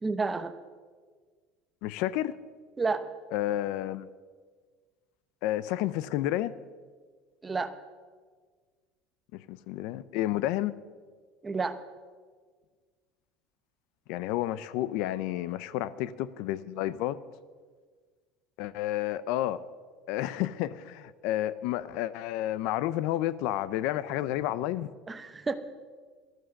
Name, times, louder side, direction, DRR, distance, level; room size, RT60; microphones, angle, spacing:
voice 1, 0.0-0.5 2.8-3.0 7.4-7.7 11.4-11.7 25.1-25.5, right 4 dB, 15° right, 0.9 m, -30 dB
voice 2, 1.8-2.4 3.3-4.1 5.4-6.5 9.3-10.7 14.1-17.2 18.6-19.6 20.1-24.9, left 14 dB, 70° left, 0.6 m, -30 dB
13.0 x 13.0 x 6.4 m
cardioid pair, 140°, 0 cm